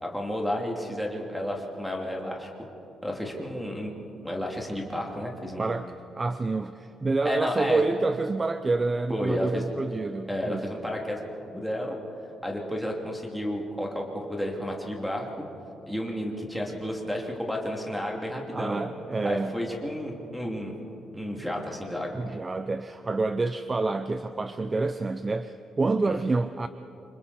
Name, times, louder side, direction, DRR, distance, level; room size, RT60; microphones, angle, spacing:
voice 1, 0.0-2.5 3.0-3.9 4.2-5.7 7.2-7.8 9.1-9.6 10.3-11.2 11.5-12.0 12.4-15.3 15.9-18.9 19.2-20.7 21.1-22.2 26.1-26.2, left 1 dB, ahead, -2 dB, 2.8 m, -31 dB
voice 2, 6.2-10.7 18.5-19.6 22.1-26.7, right 3 dB, 20° right, 11 dB, 0.5 m, -28 dB
28.5 x 26.0 x 4.3 m, 2.9 s
cardioid pair, 145°, 0 cm